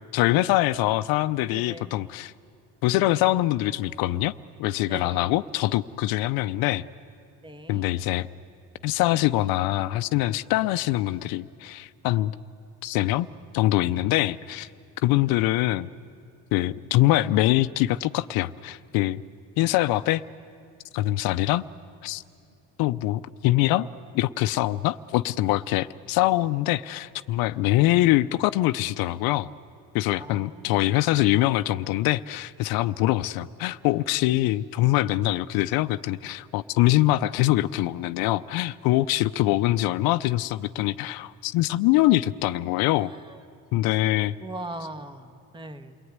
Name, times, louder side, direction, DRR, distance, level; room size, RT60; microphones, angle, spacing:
voice 1, 0.1-2.3 2.8-4.3 4.6-6.8 7.7-8.3 8.8-12.3 12.8-13.3 13.5-14.7 15.0-15.9 16.5-19.2 19.6-20.2 20.9-21.6 22.0-22.2 22.8-23.9 24.1-29.5 29.9-43.1 43.7-44.4, left 16 dB, 75° left, 13 dB, 0.6 m, -23 dB
voice 2, 1.5-1.9 4.9-5.3 7.4-7.9 30.2-30.9 43.0-43.4 44.4-46.0, right 2 dB, 15° right, 8 dB, 1.4 m, -40 dB
28.5 x 19.5 x 9.5 m, 2.4 s
cardioid pair, 115°, 36 cm